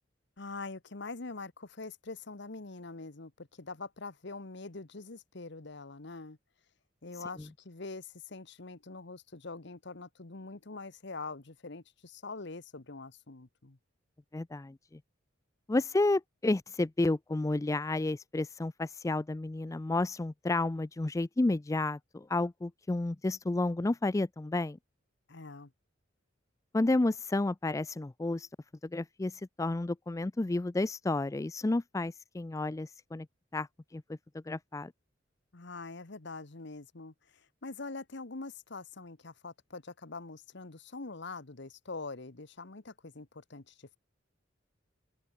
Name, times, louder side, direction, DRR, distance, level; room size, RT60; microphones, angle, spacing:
voice 1, 0.4-6.4 7.0-13.8 25.3-25.7 35.5-44.0, left 3 dB, 65° left, 1.3 m, -44 dB
voice 2, 14.3-14.8 15.7-24.8 26.7-28.5 28.9-33.3 33.5-33.7 33.9-34.0 34.5-34.9, left 2 dB, 15° left, 0.4 m, -31 dB
open air
head